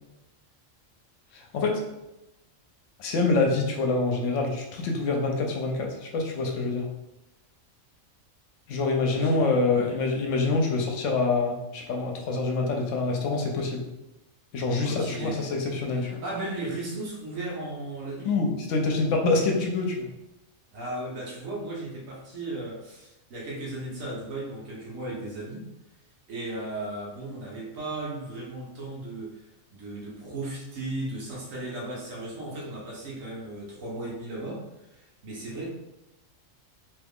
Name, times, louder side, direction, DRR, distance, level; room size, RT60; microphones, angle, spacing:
voice 1, 1.3-1.8 3.0-6.9 8.7-13.8 14.5-16.2 18.2-20.1, left 3 dB, 70° left, 1 dB, 0.9 m, -26 dB
voice 2, 9.1-9.4 9.7-9.9 14.8-15.4 15.9-18.3 20.7-25.7 26.3-35.7, right 2 dB, 75° right, -3 dB, 1.3 m, -36 dB
2.9 x 2.3 x 3.5 m, 0.93 s
omnidirectional pair, 1.4 m